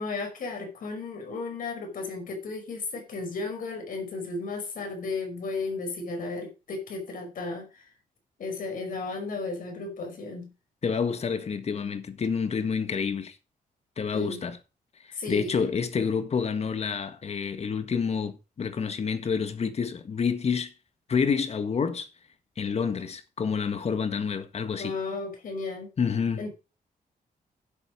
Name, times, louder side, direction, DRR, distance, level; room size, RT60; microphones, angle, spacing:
voice 1, 0.0-7.9 8.4-10.5 14.1-14.4 15.1-15.5 24.8-25.9 26.4-26.5, left 3 dB, 65° left, 5.3 m, -34 dB
voice 2, 10.8-13.3 14.0-14.6 15.3-20.7 21.1-22.1 22.6-25.0 26.0-26.5, left 6 dB, 45° left, 1.7 m, -28 dB
11.0 x 8.2 x 5.2 m
cardioid pair, 120°, 15 cm